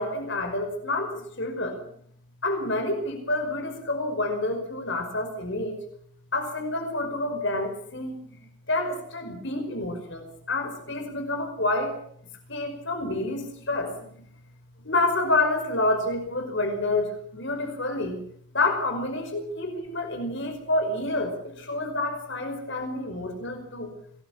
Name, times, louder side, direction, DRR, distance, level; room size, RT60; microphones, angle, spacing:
voice 1, 0.0-1.8 2.4-5.8 6.3-8.4 8.7-11.9 12.5-14.1 14.8-18.2 18.5-23.9, left 2 dB, 55° left, 5 dB, 5.3 m, -28 dB
26.5 x 19.5 x 6.0 m, 0.64 s
head